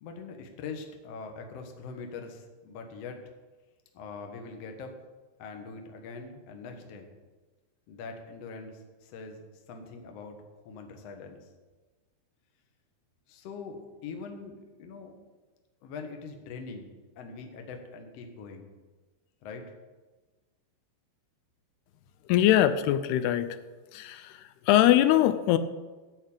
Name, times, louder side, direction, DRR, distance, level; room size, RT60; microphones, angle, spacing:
voice 1, 0.0-3.3 3.9-4.9 5.4-7.1 7.9-10.4 10.6-11.5 13.3-15.1 15.8-18.7 19.4-19.7, left 4 dB, 60° left, 4 dB, 1.8 m, -43 dB
voice 2, 22.3-23.6 23.9-25.6, left 12 dB, 85° left, 11 dB, 2.6 m, -22 dB
14.5 x 5.5 x 8.7 m, 1.3 s
omnidirectional pair, 4.6 m